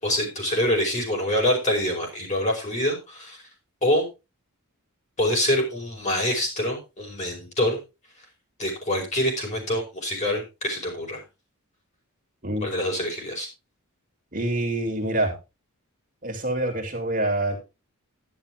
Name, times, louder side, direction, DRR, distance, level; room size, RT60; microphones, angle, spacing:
voice 1, 0.0-3.4 3.8-4.1 5.2-7.8 8.6-11.2 12.6-13.5, left 1 dB, 30° left, 0 dB, 5.2 m, -25 dB
voice 2, 14.3-15.3 16.2-17.6, right 1 dB, 40° right, 4 dB, 2.7 m, -26 dB
10.5 x 10.5 x 3.5 m, 0.27 s
head